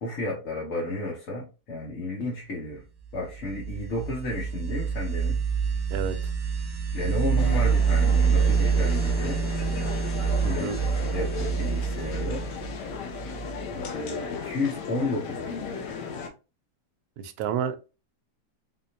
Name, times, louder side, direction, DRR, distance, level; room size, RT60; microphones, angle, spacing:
voice 1, 0.0-2.8 3.1-5.4 6.9-9.4 10.4-10.7 11.1-12.4 13.7-16.0, left 2 dB, 55° left, 1.3 m, -32 dB
sound 1, 3.3-13.8, right 6 dB, 50° right, 0.4 m, -26 dB
sound 2, 7.4-16.3, left 6 dB, 80° left, 1.3 m, -36 dB
voice 2, 10.4-10.8 17.2-17.9, right 7 dB, 70° right, 1.0 m, -30 dB
3.9 x 2.9 x 2.7 m
omnidirectional pair, 1.8 m